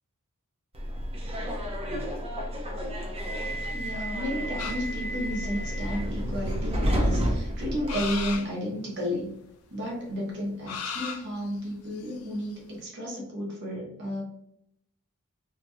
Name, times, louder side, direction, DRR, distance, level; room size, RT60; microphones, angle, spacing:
Subway metro underground, 0.7-8.4, equal, 25° right, 0.5 m, -30 dB
voice 1, 3.7-9.3 9.7-14.2, equal, 55° right, -2 dB, 0.9 m, -32 dB
sound 1, 4.6-5.4 6.0-6.1 6.4-7.1 7.9-8.5 9.0-9.1 10.7-12.5, left 6 dB, 75° left, 0.4 m, -37 dB
2.9 x 2.7 x 2.3 m, 0.75 s
head